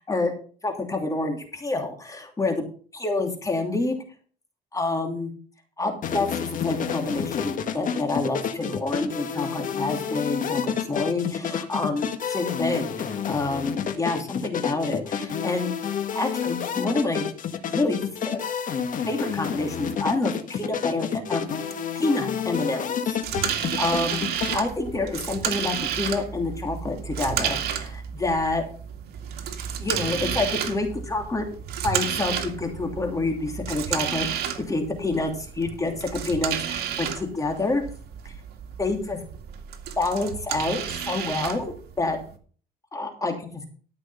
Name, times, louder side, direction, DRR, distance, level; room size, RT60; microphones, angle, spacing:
voice 1, 0.6-2.6 2.9-4.0 4.7-5.3 5.8-15.7 16.1-17.2 17.7-18.4 19.1-21.4 21.9-23.2 23.4-24.2 24.5-28.6 29.8-31.5 31.8-37.8 38.8-39.2 40.0-42.2 42.9-43.5, left 2 dB, 20° left, 3 dB, 2.9 m, -28 dB
sound 1, 6.0-24.6, left 7 dB, 50° left, 1.7 m, -29 dB
sound 2, 23.2-42.4, right 9 dB, 70° right, 2.2 m, -31 dB
13.5 x 6.3 x 5.6 m, 0.41 s
cardioid pair, 110°, 17 cm